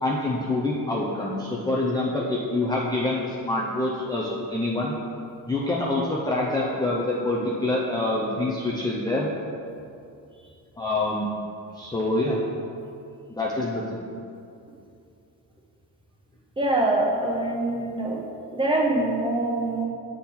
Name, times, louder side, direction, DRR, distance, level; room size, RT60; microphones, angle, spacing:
voice 1, 0.0-5.0 5.5-9.3 10.8-11.3 11.7-12.4 13.3-14.0, left 2 dB, 10° left, -4 dB, 0.5 m, -26 dB
voice 2, 16.6-18.2 18.5-19.8, right 2 dB, 15° right, -2 dB, 1.0 m, -24 dB
7.6 x 3.7 x 4.3 m, 2.5 s
cardioid pair, 115°, 38 cm